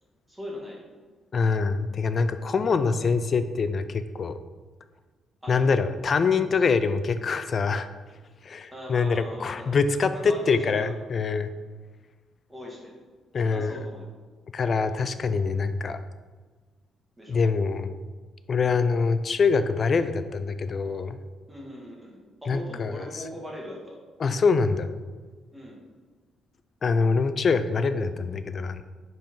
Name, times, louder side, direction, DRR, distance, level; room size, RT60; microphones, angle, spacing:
voice 1, 0.3-0.8 5.4-5.8 8.7-9.8 10.1-10.9 12.5-13.0 13.4-14.0 14.6-15.1 17.2-17.4 21.5-24.0 25.5-25.8, equal, 10° right, -3 dB, 1.6 m, -40 dB
voice 2, 1.3-4.3 5.5-7.9 8.4-11.5 13.3-13.8 14.5-16.0 17.3-18.0 18.5-21.2 22.5-23.0 24.2-24.9 26.8-28.8, left 4 dB, 40° left, 11 dB, 0.4 m, -24 dB
5.4 x 4.4 x 5.2 m, 1.4 s
cardioid pair, 135°, 0 cm